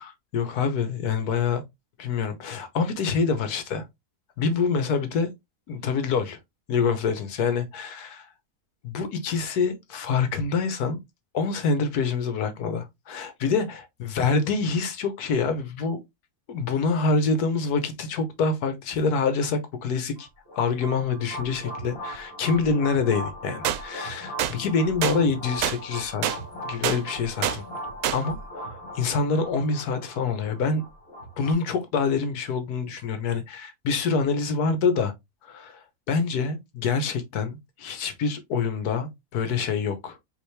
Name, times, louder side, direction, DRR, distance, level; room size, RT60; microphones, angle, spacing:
voice 1, 0.3-1.6 2.0-3.8 4.4-5.3 5.7-6.4 6.7-8.3 8.8-11.0 11.3-16.0 16.5-20.3 20.6-26.2 26.6-27.6 28.1-30.8 31.4-35.1 35.4-35.8 36.1-40.2, left 4 dB, 80° left, 1.5 m, -26 dB
sound 1, 20.2-31.5, equal, 60° left, 2.1 m, -38 dB
sound 2, 23.6-23.8 24.4-24.5 25.0-25.2 25.6-25.8 26.2-26.4 26.8-27.0 27.4-27.6 28.0-28.2, right 11 dB, 80° right, 1.1 m, -25 dB
4.9 x 3.0 x 3.2 m
omnidirectional pair, 1.6 m